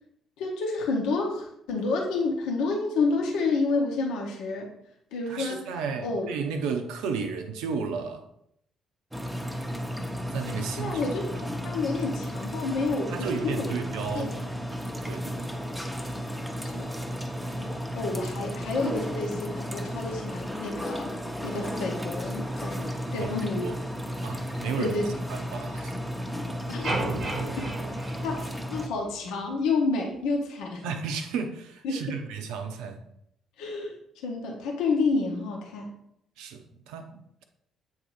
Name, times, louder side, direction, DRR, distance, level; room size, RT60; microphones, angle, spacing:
voice 1, 0.4-4.7 5.1-5.7 6.0-6.3 10.8-13.8 14.1-14.4 16.6-16.9 17.9-21.1 21.4-23.7 24.8-25.1 26.7-27.1 27.4-27.7 28.2-30.9 31.8-32.0 33.6-34.0 34.2-35.9, left 3 dB, 60° left, 0 dB, 0.9 m, -29 dB
voice 2, 5.3-8.3 10.3-11.0 11.4-11.5 13.1-14.4 15.0-15.6 17.6-17.7 23.2-23.3 23.6-23.8 24.2-25.0 25.3-26.0 30.8-33.1 36.4-37.4, right 5 dB, 60° right, 6 dB, 0.6 m, -33 dB
sound 1, 9.1-28.9, equal, 5° right, 0.8 m, -34 dB
sound 2, 26.8-29.1, right 2 dB, 40° right, 0.9 m, -32 dB
8.0 x 2.8 x 4.6 m, 0.74 s
figure-of-eight pair, 45°, 0 cm